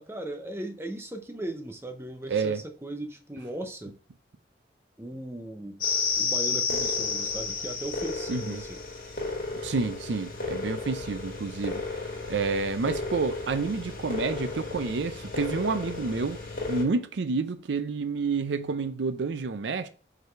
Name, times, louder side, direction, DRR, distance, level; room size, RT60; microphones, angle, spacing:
voice 1, 0.0-3.9 5.0-5.8 6.2-8.8, right 1 dB, 15° right, 0.7 m, -37 dB
voice 2, 2.3-2.6 8.3-8.6 9.6-12.0 12.3-16.4 16.7-19.9, right 4 dB, 85° right, 0.5 m, -29 dB
sound 1, 5.8-16.8, left 4 dB, 50° left, 2.0 m, -32 dB
5.4 x 4.0 x 4.5 m
head